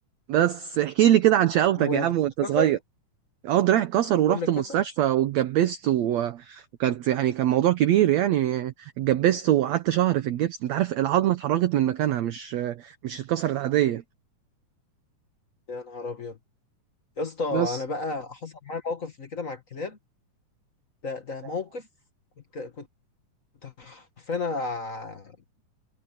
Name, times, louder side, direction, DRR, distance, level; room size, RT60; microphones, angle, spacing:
voice 1, 0.3-2.8 3.4-14.0 17.5-17.8, right 12 dB, 70° right, 1.9 m, -23 dB
voice 2, 1.8-2.1 2.4-2.7 4.3-4.8 15.7-16.4 17.2-20.0 21.0-21.9 22.5-22.9 23.6-25.3, left 3 dB, 40° left, 1.1 m, -32 dB
omnidirectional pair, 3.7 m